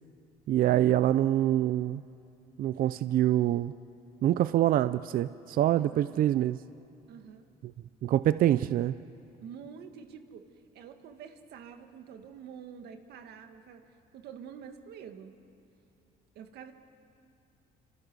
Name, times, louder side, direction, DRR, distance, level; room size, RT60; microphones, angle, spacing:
voice 1, 0.5-2.0 2.6-3.7 4.2-6.6 7.6-7.7 8.0-9.0, right 12 dB, 60° right, 14 dB, 0.5 m, -25 dB
voice 2, 5.8-6.3 7.1-7.5 9.4-10.5 10.7-13.8 14.1-15.4 16.4-16.7, right 7 dB, 75° right, 6 dB, 1.9 m, -47 dB
29.5 x 26.5 x 6.3 m, 2.6 s
cardioid pair, 110°, 17 cm